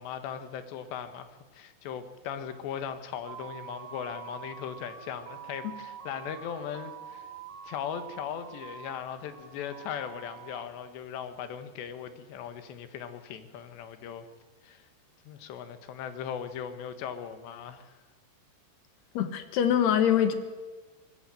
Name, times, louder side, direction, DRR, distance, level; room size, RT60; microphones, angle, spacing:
voice 1, 0.0-7.3 7.6-14.3 14.6-14.9 15.3-17.9, left 8 dB, 90° left, 10 dB, 3.7 m, -38 dB
sound 1, 3.2-10.6, right 7 dB, 45° right, 2.7 m, -45 dB
voice 2, 19.2-20.4, left 9 dB, 75° left, 9 dB, 3.6 m, -24 dB
25.0 x 19.5 x 7.7 m, 1.3 s
omnidirectional pair, 4.8 m